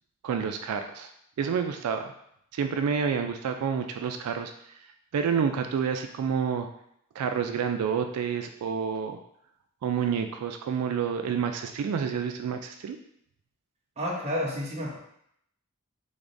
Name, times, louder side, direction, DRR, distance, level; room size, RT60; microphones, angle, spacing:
voice 1, 0.2-1.1 1.4-2.1 2.5-4.5 5.1-6.7 7.2-9.2 9.8-13.0, right 6 dB, 90° right, 6 dB, 0.3 m, -29 dB
voice 2, 14.0-15.0, left 1 dB, 30° right, -3 dB, 0.8 m, -30 dB
3.9 x 3.4 x 2.5 m, 0.72 s
head